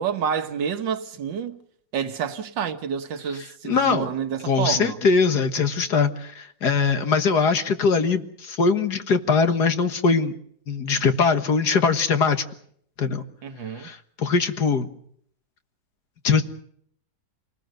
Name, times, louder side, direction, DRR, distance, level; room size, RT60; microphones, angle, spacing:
voice 1, 0.0-1.6 1.9-5.0 13.4-13.9, right 7 dB, 75° right, 1.9 m, -28 dB
voice 2, 3.7-4.1 4.5-10.3 10.7-12.4 13.0-13.2 13.8-14.9 16.2-16.4, left 5 dB, 60° left, 2.1 m, -21 dB
27.5 x 19.5 x 6.6 m
omnidirectional pair, 2.0 m